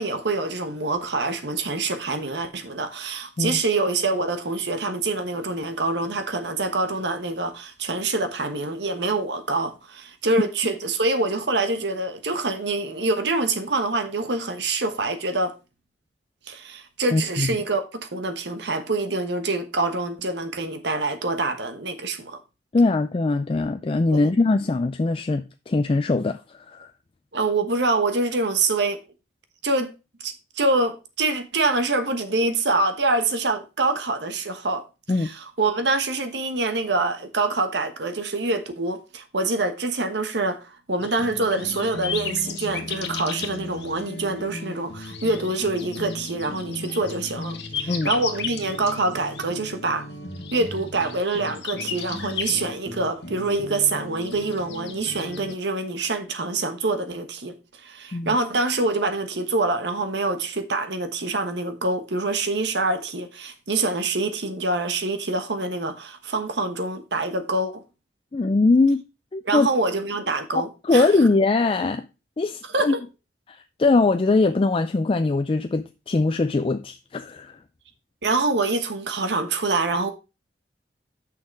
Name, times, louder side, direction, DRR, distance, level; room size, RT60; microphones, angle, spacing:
voice 1, 0.0-15.5 16.5-22.4 24.1-24.2 27.3-29.0 29.6-29.9 30.2-34.8 35.2-50.1 50.5-57.5 57.8-67.8 69.4-71.1 72.7-73.0 78.2-80.1, right 3 dB, 75° right, 1.2 m, -25 dB
voice 2, 17.1-17.6 22.7-26.9 35.1-35.3 47.9-48.1 58.1-58.3 68.3-69.0 69.3-69.7 70.5-72.1 72.4-72.9 73.5-77.6, left 3 dB, 30° left, 0.4 m, -22 dB
sound 1, 41.0-55.5, left 4 dB, 75° left, 1.3 m, -34 dB
6.5 x 5.7 x 4.6 m
head